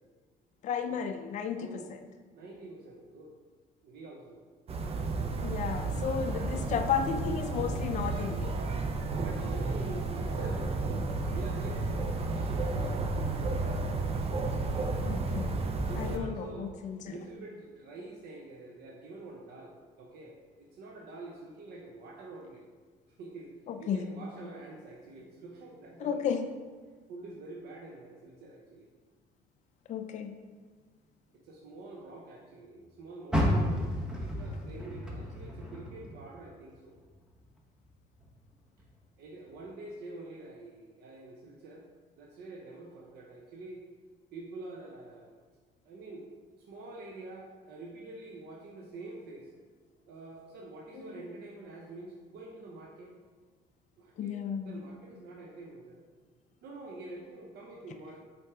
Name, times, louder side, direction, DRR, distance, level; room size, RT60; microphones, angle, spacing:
voice 1, 0.6-2.0 5.4-8.6 15.0-15.6 15.9-17.1 23.7-24.1 26.0-26.5 29.9-30.4 50.9-51.0 54.2-54.8, left 7 dB, 45° left, 6 dB, 0.5 m, -33 dB
voice 2, 1.5-2.0 2.4-3.3 3.8-4.5 9.1-10.7 11.3-13.8 15.9-16.8 17.1-22.6 23.2-23.5 23.8-26.3 27.1-28.9 31.4-37.0 39.2-41.9 42.2-43.8 44.3-45.4 45.8-46.2 46.6-49.5 50.1-53.1 54.0-54.4 54.6-56.0 56.6-58.2, right 2 dB, 70° right, 0 dB, 0.8 m, -46 dB
sound 1, 4.7-16.2, right 3 dB, 35° right, 0.6 m, -32 dB
Car, 33.3-36.6 37.0-38.3 38.8-38.9 39.5-39.6, equal, 5° right, 1.0 m, -32 dB
5.8 x 4.6 x 3.6 m, 1.4 s
cardioid pair, 110°, 17 cm